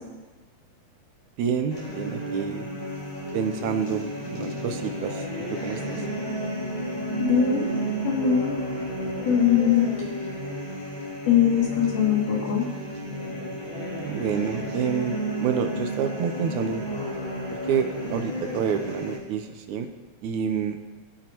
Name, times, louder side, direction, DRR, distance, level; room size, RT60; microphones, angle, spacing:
voice 1, 1.4-2.7 3.3-6.0 14.0-16.8 17.7-19.9 20.2-20.8, right 7 dB, 75° right, 7 dB, 2.0 m, -28 dB
sound 1, 1.7-19.2, equal, 20° left, 2.5 m, -32 dB
voice 2, 7.2-7.7 8.0-8.6 9.2-9.9 11.3-12.7, left 8 dB, 80° left, -6 dB, 4.0 m, -21 dB
18.5 x 9.2 x 3.0 m, 1.3 s
omnidirectional pair, 3.6 m